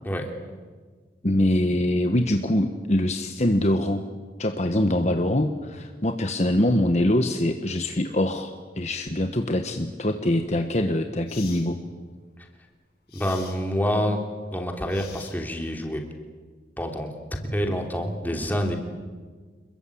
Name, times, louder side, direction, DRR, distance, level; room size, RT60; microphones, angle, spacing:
voice 1, 1.2-4.0 4.4-11.8, left 1 dB, 40° left, 6 dB, 1.3 m, -23 dB
sound 1, 10.4-10.5 11.3-11.7 13.1-13.6 14.9-15.6, left 8 dB, 65° left, 6.3 m, -44 dB
voice 2, 13.1-14.2 14.5-16.0 16.8-18.8, equal, 10° left, 3 dB, 3.1 m, -27 dB
28.0 x 22.0 x 8.7 m, 1.5 s
head